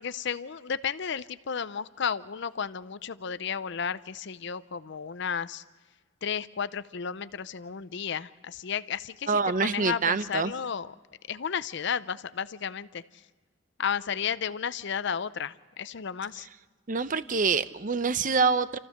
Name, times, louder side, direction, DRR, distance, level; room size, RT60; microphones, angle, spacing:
voice 1, 0.0-5.6 6.2-10.9 11.3-13.0 13.8-16.5, left 7 dB, 60° left, 15 dB, 0.6 m, -33 dB
voice 2, 9.3-10.5 16.9-18.8, right 5 dB, 40° right, 14 dB, 0.6 m, -26 dB
28.5 x 14.5 x 6.5 m, 1.3 s
head